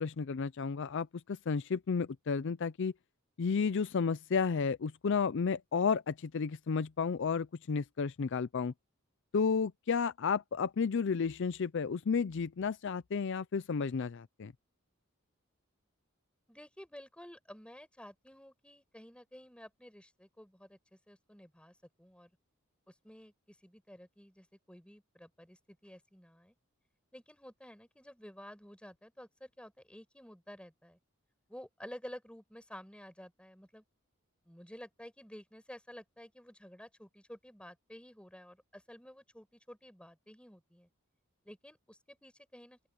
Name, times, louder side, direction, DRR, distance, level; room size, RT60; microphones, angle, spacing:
voice 1, 0.0-2.9 3.4-8.7 9.3-14.5, left 5 dB, 60° left, 0.5 m, -32 dB
voice 2, 16.5-22.3 22.9-26.5 27.1-31.0 31.5-33.8 34.5-40.9 41.4-42.9, equal, 5° left, 6.1 m, -52 dB
open air
head